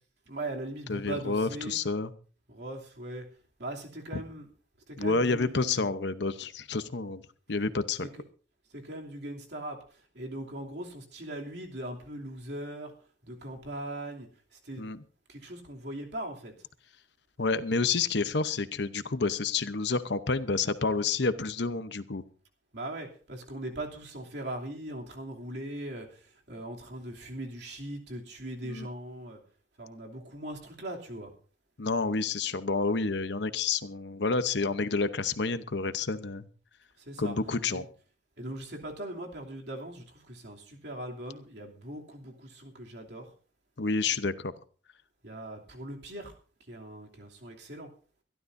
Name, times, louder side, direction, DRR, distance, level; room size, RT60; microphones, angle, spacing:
voice 1, 0.3-1.8 2.5-3.3 3.6-4.5 4.9-5.9 8.7-9.8 10.1-12.9 13.2-14.3 14.6-14.8 15.3-16.5 22.7-26.2 26.5-29.4 29.8-31.3 37.1-37.4 37.7-37.8 38.4-43.3 45.2-46.3 46.7-47.9, right 1 dB, 60° right, 0 dB, 2.8 m, -40 dB
voice 2, 0.9-2.1 4.1-4.2 5.0-8.1 14.8-15.0 17.4-22.2 28.6-28.9 31.8-36.5 37.2-37.9 43.8-44.5, left 4 dB, 65° left, 12 dB, 0.9 m, -29 dB
24.0 x 12.5 x 2.7 m, 0.38 s
head